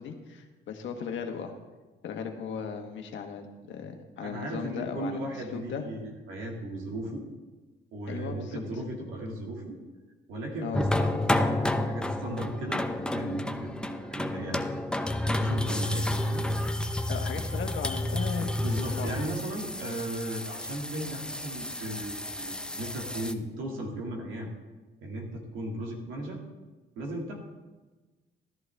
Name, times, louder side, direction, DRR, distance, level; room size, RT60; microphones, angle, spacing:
voice 1, 0.0-1.5 2.0-5.2 5.5-5.8 8.1-8.6 10.6-10.8 17.1-19.2, left 6 dB, 70° left, 4 dB, 1.5 m, -37 dB
voice 2, 4.2-7.3 7.9-9.8 10.3-14.7 15.2-16.4 18.6-24.5 25.0-26.4 27.0-27.4, right 1 dB, 90° right, 0 dB, 2.4 m, -36 dB
sound 1, 10.7-23.3, left 1 dB, 5° left, 0.7 m, -30 dB
13.5 x 11.0 x 3.5 m, 1.2 s
cardioid pair, 90°, 20 cm